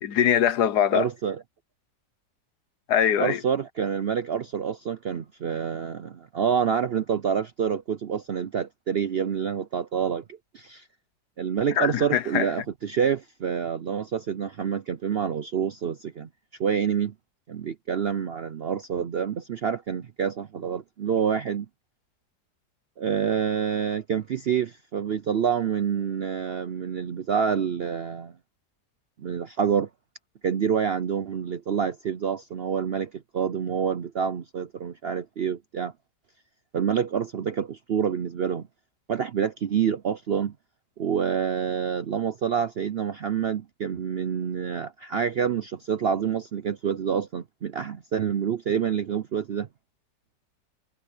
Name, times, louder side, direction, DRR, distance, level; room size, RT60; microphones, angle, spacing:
voice 1, 0.0-1.1 2.9-3.4 11.8-12.5, left 9 dB, 75° left, 1.5 m, -22 dB
voice 2, 0.9-1.4 3.2-10.2 10.5-10.9 11.4-16.3 16.6-17.1 17.5-21.7 23.0-28.3 29.2-29.9 30.4-35.9 36.7-38.7 39.1-40.5 41.0-49.7, right 7 dB, 60° right, 0.6 m, -27 dB
omnidirectional pair, 1.7 m